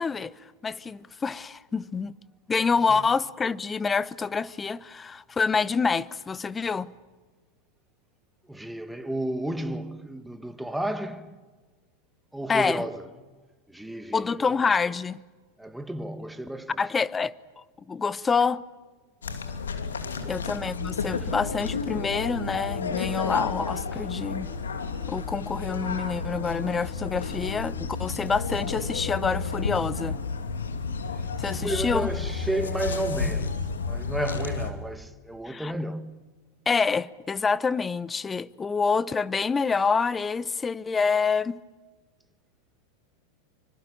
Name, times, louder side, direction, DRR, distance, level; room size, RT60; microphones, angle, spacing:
voice 1, 0.0-2.1 2.5-6.9 12.5-12.8 14.1-15.2 16.8-18.6 20.3-24.5 25.1-30.2 31.4-32.1 35.5-35.7 36.7-41.6, left 5 dB, 20° left, 0.9 m, -27 dB
voice 2, 8.5-11.4 12.3-13.0 13.7-14.5 15.6-16.8 19.3-19.4 20.0-20.4 21.1-21.3 31.5-36.2, right 1 dB, 5° right, 1.8 m, -33 dB
sound 1, 19.2-34.7, left 4 dB, 85° left, 2.6 m, -31 dB
26.0 x 25.0 x 8.8 m
hypercardioid pair, 95°, 0 cm